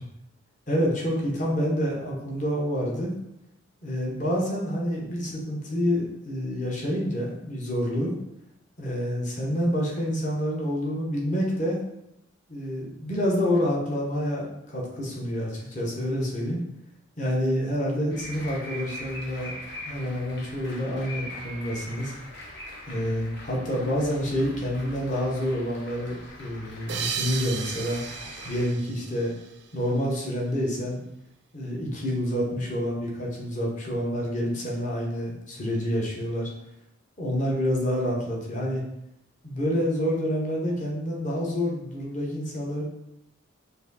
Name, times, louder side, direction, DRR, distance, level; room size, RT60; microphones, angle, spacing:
voice 1, 0.7-3.1 3.8-8.1 8.8-11.8 12.5-16.6 17.2-19.5 19.8-22.1 22.9-28.0 28.4-29.3 29.7-31.0 31.5-36.5 37.2-38.8 39.4-42.8, equal, 35° left, -3 dB, 1.0 m, -28 dB
sound 1, 18.1-28.7, left 1 dB, 55° left, 1.1 m, -42 dB
sound 2, 26.9-30.0, right 7 dB, 55° right, 0.4 m, -35 dB
4.6 x 2.7 x 4.0 m, 0.85 s
head